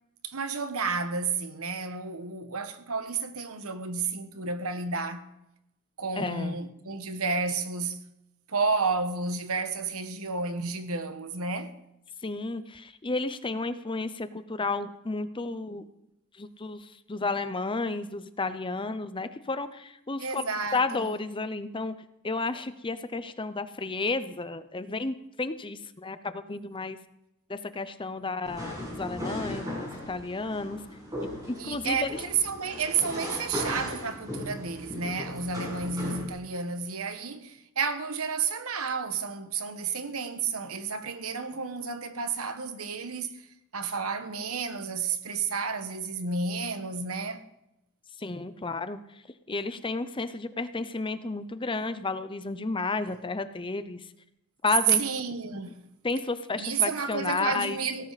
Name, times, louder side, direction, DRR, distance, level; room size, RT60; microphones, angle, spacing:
voice 1, 0.2-5.3 6.0-8.0 8.5-11.7 20.2-21.1 31.5-43.5 43.7-47.4 55.0-55.8 56.6-58.1, right 4 dB, 70° right, 1.3 m, -31 dB
voice 2, 6.2-6.6 12.2-15.8 16.4-21.9 22.2-27.0 27.5-30.8 31.5-32.1 48.2-49.0 49.5-54.0 54.6-55.0 56.0-57.8, left 3 dB, 20° left, 0.7 m, -32 dB
sound 1, 28.4-36.3, left 1 dB, 15° right, 6.6 m, -37 dB
18.0 x 15.0 x 4.2 m
head